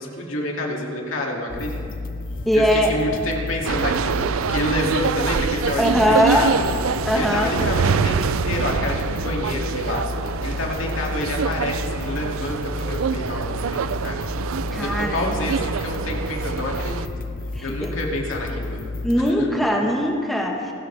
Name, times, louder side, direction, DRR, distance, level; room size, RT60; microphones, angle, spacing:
voice 1, 0.0-1.8 2.5-14.3 14.7-17.3 17.6-18.8 19.4-19.5, left 1 dB, 70° left, -1 dB, 2.5 m, -28 dB
sound 1, 1.5-19.3, left 2 dB, 45° left, 0.5 m, -32 dB
voice 2, 2.4-2.9 5.8-6.5 7.0-7.5 14.7-15.4 17.5-17.9 19.0-20.7, equal, ahead, -1 dB, 1.3 m, -20 dB
sound 2, 3.6-17.1, right 6 dB, 85° right, 0.4 m, -26 dB
29.0 x 12.5 x 3.4 m, 2.4 s
head